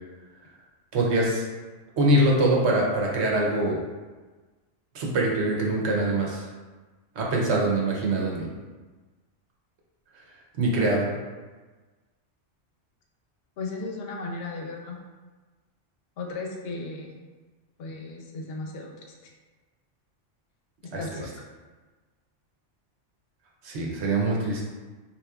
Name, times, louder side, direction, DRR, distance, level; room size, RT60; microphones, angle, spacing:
voice 1, 0.9-1.4 2.0-3.8 4.9-6.4 7.2-8.5 10.6-11.2 20.9-21.0 23.6-24.6, right 1 dB, 70° right, -2 dB, 1.0 m, -23 dB
voice 2, 13.6-15.0 16.2-17.2 17.8-18.9 21.0-21.3, left 3 dB, 65° left, 1 dB, 0.8 m, -35 dB
3.9 x 2.8 x 2.3 m, 1.3 s
omnidirectional pair, 1.2 m